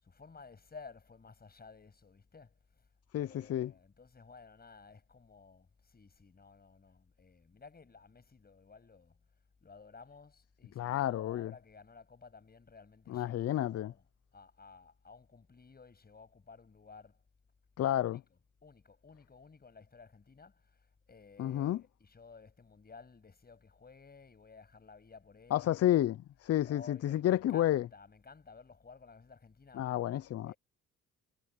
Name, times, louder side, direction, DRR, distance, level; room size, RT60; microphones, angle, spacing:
voice 1, 0.0-2.9 3.1-9.2 9.6-14.0 14.3-17.2 18.1-18.2 18.6-25.9 26.6-29.9 30.5-30.6, left 4 dB, 30° left, 7.6 m, -55 dB
voice 2, 3.1-3.7 10.8-11.5 13.1-13.9 17.8-18.2 21.4-21.8 25.5-27.9 29.7-30.5, left 12 dB, 55° left, 0.6 m, -30 dB
cardioid pair, 90°, 30 cm